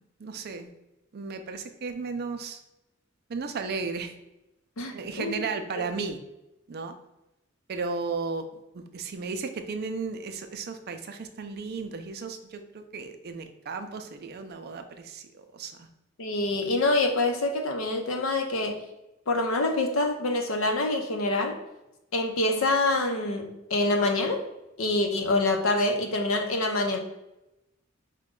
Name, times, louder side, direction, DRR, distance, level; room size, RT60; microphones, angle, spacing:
voice 1, 0.2-0.7 1.1-2.6 3.3-4.1 4.9-6.2 6.7-6.9 7.7-8.5 8.7-15.9, right 4 dB, 50° right, 7 dB, 0.4 m, -34 dB
voice 2, 4.8-5.4 16.2-18.8 19.3-21.6 22.1-24.4 24.8-27.0, left 2 dB, 80° left, 4 dB, 0.6 m, -26 dB
5.0 x 2.2 x 3.6 m, 0.93 s
head